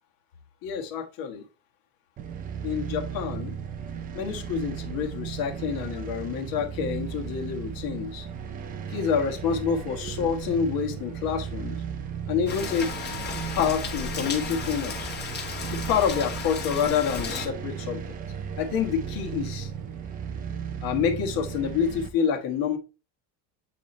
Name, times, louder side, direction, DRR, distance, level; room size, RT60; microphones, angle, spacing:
voice 1, 0.6-1.4 2.6-3.6 4.1-8.3 8.9-11.8 12.3-12.9 13.5-15.1 15.7-18.0 18.6-19.7 20.8-22.8, left 7 dB, 45° left, 1.5 m, -27 dB
sound 1, 2.2-22.1, right 7 dB, 20° right, 0.3 m, -35 dB
Rain, 12.5-17.5, left 5 dB, 20° left, 1.4 m, -34 dB
8.2 x 4.3 x 3.1 m
cardioid pair, 175°, 47 cm